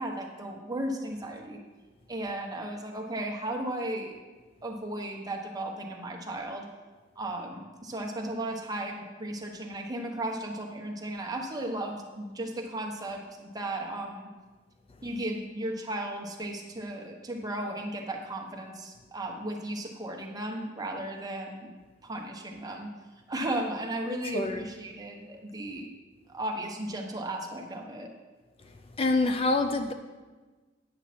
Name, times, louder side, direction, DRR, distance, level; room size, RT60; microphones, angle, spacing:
voice 1, 0.0-1.6 2.1-4.1 4.6-6.7 7.2-14.3 15.0-21.7 22.0-22.9 23.3-25.9 26.3-28.1, right 1 dB, 20° right, 1 dB, 1.0 m, -35 dB
voice 2, 29.0-29.9, left 2 dB, 30° left, 7 dB, 0.4 m, -26 dB
9.7 x 7.3 x 4.2 m, 1.3 s
head